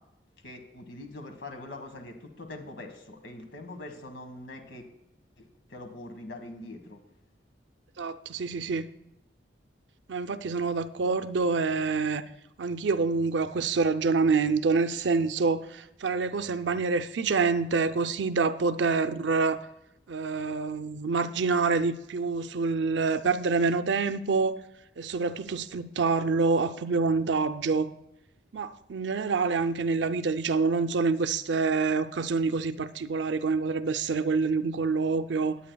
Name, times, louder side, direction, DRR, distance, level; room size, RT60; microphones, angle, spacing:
voice 1, 0.4-4.8 5.4-7.0, left 2 dB, 85° left, 1.6 m, -43 dB
voice 2, 8.0-8.9 10.1-12.2 12.6-19.7 20.1-24.6 25.0-27.9 28.5-35.6, right 4 dB, 80° right, 0.6 m, -27 dB
18.5 x 8.8 x 2.3 m
head